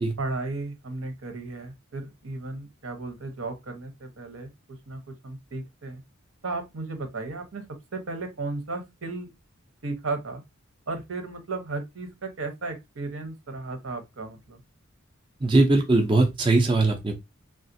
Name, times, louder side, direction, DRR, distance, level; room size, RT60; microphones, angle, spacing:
voice 1, 0.2-6.0 6.4-7.7 7.9-9.3 9.8-10.4 10.9-14.6, right 3 dB, 80° right, 1.0 m, -35 dB
voice 2, 15.4-17.2, right 2 dB, 25° right, 0.5 m, -20 dB
3.5 x 2.4 x 2.6 m
head